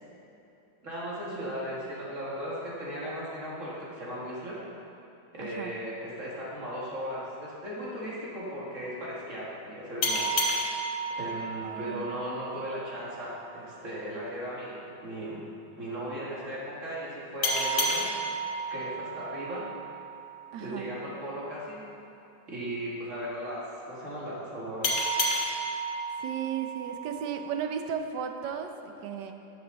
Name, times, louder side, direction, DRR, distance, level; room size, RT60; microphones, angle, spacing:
voice 1, 0.8-4.6 5.3-10.4 11.2-15.4 15.8-18.1 18.4-19.6 20.6-21.8 22.5-25.1, equal, 40° right, -6 dB, 2.5 m, -37 dB
voice 2, 5.4-5.8 11.6-12.1 20.5-20.9 26.2-29.3, right 7 dB, 70° right, 6 dB, 1.3 m, -35 dB
sound 1, 10.0-13.2 17.4-20.7 24.8-27.8, right 1 dB, 85° left, 2.0 m, -32 dB
12.0 x 7.9 x 4.1 m, 3.0 s
omnidirectional pair, 2.0 m